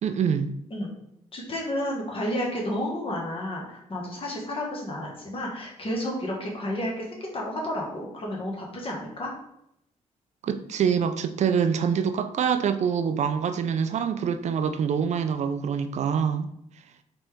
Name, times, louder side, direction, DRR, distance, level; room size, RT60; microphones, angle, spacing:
voice 1, 0.0-0.5 10.4-16.5, right 7 dB, 60° right, 10 dB, 0.4 m, -25 dB
voice 2, 1.3-9.3, left 1 dB, 45° left, -1 dB, 1.4 m, -31 dB
4.0 x 3.3 x 3.6 m, 0.78 s
cardioid pair, 90°, 13 cm